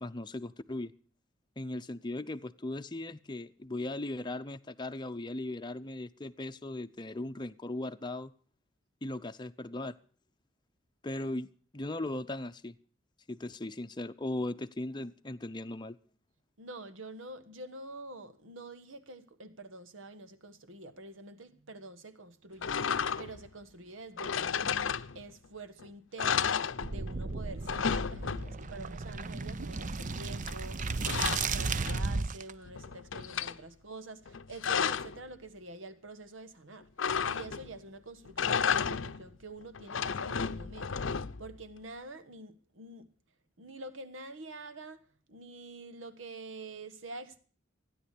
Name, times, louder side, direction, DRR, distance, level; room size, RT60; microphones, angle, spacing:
voice 1, 0.0-0.9 1.6-8.3 9.0-9.9 11.0-12.8 13.3-16.0, left 2 dB, 25° left, 0.7 m, -38 dB
voice 2, 16.6-36.9 37.2-43.1 43.6-45.0 45.3-47.4, right 2 dB, 85° right, 1.5 m, -47 dB
sound 1, 22.6-23.5 24.2-25.5 25.8-25.9 26.2-27.3 27.5-28.8 30.5-32.3 32.7-33.6 34.3-35.2 37.0-37.8 38.3-39.3 39.7-41.5, left 6 dB, 80° left, 0.7 m, -33 dB
sound 2, 26.8-32.5, right 4 dB, 40° right, 0.7 m, -34 dB
16.0 x 10.0 x 8.4 m
head